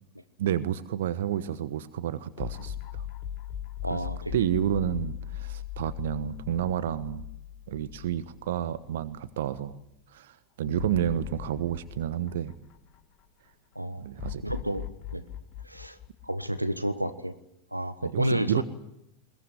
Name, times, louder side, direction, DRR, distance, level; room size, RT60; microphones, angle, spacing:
voice 1, 0.4-3.0 3.9-4.0 4.3-7.2 7.7-9.8 10.1-12.5 14.0-14.4 18.0-18.6, right 11 dB, 55° right, 14 dB, 1.1 m, -30 dB
sound 1, 2.4-8.7 9.1-9.2 10.8-13.2 14.2-16.9, left 11 dB, 35° left, 3.4 m, -39 dB
voice 2, 3.8-4.5 10.6-10.8 13.7-14.1 14.4-15.2 15.6-16.0 16.2-17.4 17.7-18.6, equal, 90° right, 11 dB, 1.3 m, -31 dB
21.5 x 20.5 x 9.7 m, 0.80 s
figure-of-eight pair, 90°, 0 cm